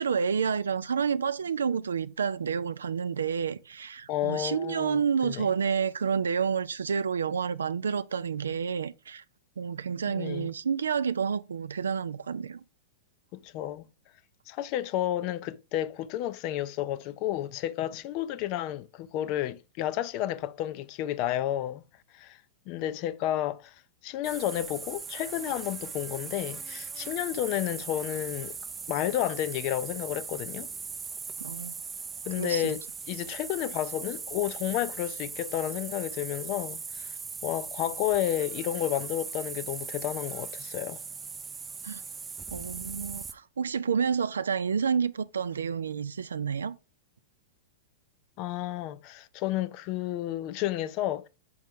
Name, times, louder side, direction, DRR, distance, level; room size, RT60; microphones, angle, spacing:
voice 1, 0.0-9.2 9.6-12.6 31.4-31.7 32.4-32.7 41.8-42.0 42.5-46.7, right 6 dB, 80° right, 0.3 m, -29 dB
voice 2, 4.1-5.5 10.1-10.5 13.3-13.9 14.5-21.8 22.1-22.4 22.7-23.7 24.0-28.6 28.9-30.7 32.2-32.8 33.1-41.0 48.4-51.3, left 12 dB, 45° left, 0.4 m, -31 dB
sound 1, 24.2-43.3, right 5 dB, 15° right, 0.5 m, -39 dB
6.2 x 4.4 x 3.5 m
hypercardioid pair, 105°, 0 cm